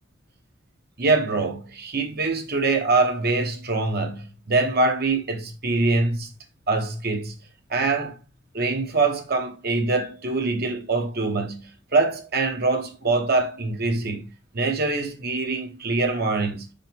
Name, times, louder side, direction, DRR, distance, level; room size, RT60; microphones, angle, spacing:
voice 1, 1.0-6.3 6.7-7.3 7.7-8.2 8.5-14.3 14.5-16.7, right 3 dB, 55° right, 1.2 m, -24 dB
5.4 x 4.9 x 3.6 m
head